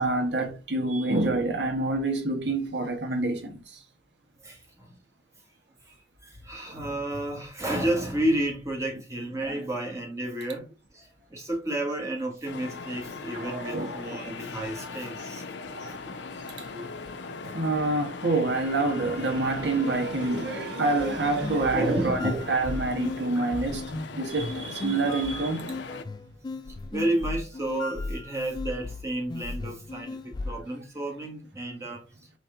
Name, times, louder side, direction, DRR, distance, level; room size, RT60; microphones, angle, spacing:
voice 1, 0.0-3.8 13.3-14.0 15.7-16.3 16.6-16.9 17.5-26.0, right 2 dB, 70° right, 1.3 m, -27 dB
voice 2, 4.4-4.9 5.8-6.0 6.2-15.4 15.9-16.0 17.4-17.6 21.7-22.4 23.3-23.5 26.9-32.2, right 1 dB, 15° right, 1.6 m, -31 dB
sound 1, 12.4-26.0, left 4 dB, 70° left, 0.5 m, -39 dB
sound 2, 21.0-30.7, left 2 dB, 25° left, 0.3 m, -36 dB
4.2 x 3.3 x 3.8 m
head